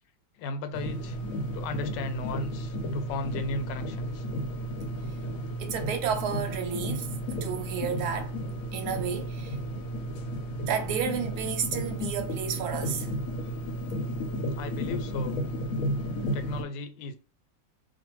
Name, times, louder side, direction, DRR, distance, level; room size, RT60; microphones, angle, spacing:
voice 1, 0.4-1.2 1.5-4.2 14.5-15.4 16.3-17.2, left 3 dB, 85° left, 1.3 m, -35 dB
sound 1, 0.7-16.6, equal, 60° left, 1.0 m, -33 dB
voice 2, 5.6-8.4 8.7-9.6 10.7-13.1, right 7 dB, 65° right, 1.1 m, -31 dB
2.6 x 2.5 x 3.0 m
omnidirectional pair, 2.0 m